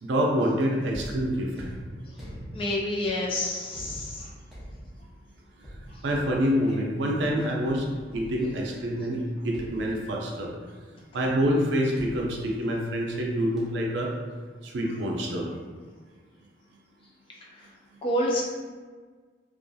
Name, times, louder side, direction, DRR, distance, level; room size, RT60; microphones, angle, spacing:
voice 1, 0.0-1.5 6.0-7.9 8.1-10.5 11.1-14.1 14.6-15.5, equal, 75° right, -1 dB, 0.4 m, -26 dB
sound 1, 0.9-8.8 9.5-10.5 12.0-13.2 13.6-13.9, equal, ahead, 0.6 m, -44 dB
voice 2, 2.5-4.3 5.9-6.0 17.6-17.7 18.0-18.4, left 1 dB, 30° left, -3 dB, 0.3 m, -28 dB
2.6 x 2.4 x 2.2 m, 1.5 s
head